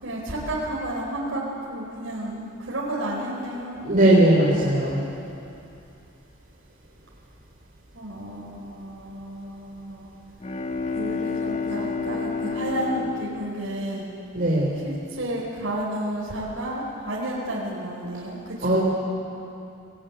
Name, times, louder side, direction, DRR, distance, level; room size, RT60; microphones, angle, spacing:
voice 1, 0.0-3.8 7.9-10.1 10.9-14.0 14.8-18.8, right 1 dB, 70° right, -5 dB, 4.4 m, -31 dB
voice 2, 3.9-5.0 14.3-14.8 18.6-18.8, right 1 dB, 45° right, -4 dB, 3.9 m, -19 dB
Bowed string instrument, 10.2-14.9, left 4 dB, 35° left, 1.3 m, -31 dB
26.0 x 18.0 x 9.4 m, 2.7 s
head